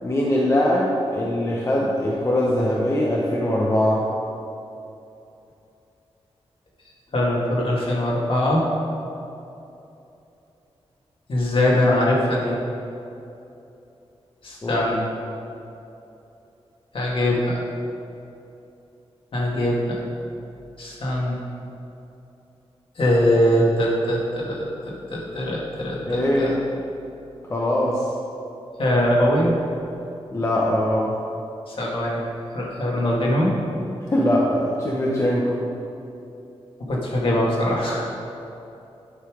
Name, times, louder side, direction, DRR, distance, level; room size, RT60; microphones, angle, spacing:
voice 1, 0.0-4.1 14.6-14.8 26.1-26.6 27.5-28.0 30.3-31.1 34.1-35.7, left 1 dB, 30° left, -4 dB, 0.9 m, -22 dB
voice 2, 7.1-8.6 11.3-12.6 14.4-15.0 16.9-17.6 19.3-20.0 20.8-21.4 23.0-26.5 28.8-29.5 31.7-32.2 32.5-33.5 36.9-38.1, left 1 dB, 55° left, -4 dB, 2.1 m, -22 dB
10.0 x 5.7 x 4.9 m, 2.8 s
wide cardioid pair, 125°, 11 cm